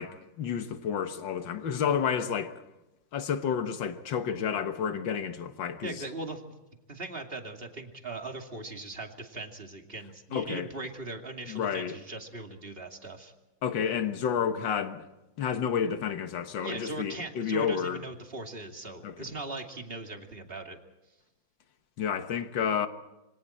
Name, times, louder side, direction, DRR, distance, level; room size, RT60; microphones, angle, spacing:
voice 1, 0.0-2.6 3.1-6.0 10.3-10.7 11.5-11.9 13.6-15.1 15.4-18.0 19.0-19.1 22.0-22.9, left 7 dB, 80° left, 2.0 m, -30 dB
voice 2, 5.8-6.5 6.9-13.3 16.6-20.8, right 2 dB, 30° right, 2.7 m, -39 dB
27.5 x 25.0 x 4.4 m
omnidirectional pair, 2.0 m